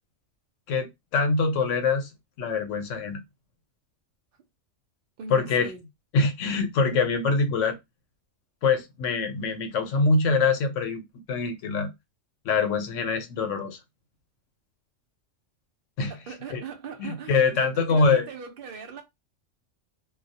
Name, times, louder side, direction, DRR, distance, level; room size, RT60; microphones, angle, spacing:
voice 1, 0.7-2.1 2.4-3.2 5.3-5.7 6.1-7.8 8.6-11.9 12.5-13.8 16.0-16.1 16.5-16.6 17.0-18.3, left 4 dB, 80° left, 0.9 m, -24 dB
voice 2, 5.2-5.9 16.1-19.0, right 5 dB, 55° right, 0.7 m, -40 dB
2.3 x 2.1 x 2.6 m
omnidirectional pair, 1.3 m